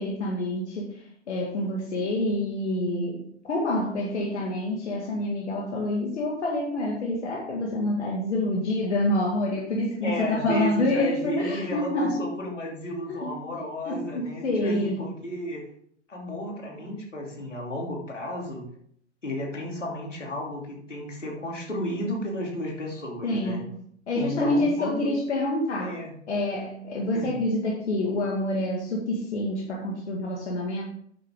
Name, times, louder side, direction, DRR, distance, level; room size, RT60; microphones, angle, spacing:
voice 1, 0.0-12.3 13.2-15.1 23.2-23.8 24.1-25.9 26.3-30.8, left 1 dB, 70° left, -2 dB, 2.2 m, -27 dB
voice 2, 10.0-15.6 16.1-18.7 19.2-23.6 24.1-25.1 25.8-26.1 27.1-27.4, left 1 dB, 85° left, -1 dB, 3.2 m, -33 dB
8.7 x 8.4 x 3.8 m, 0.65 s
figure-of-eight pair, 115°, 35 cm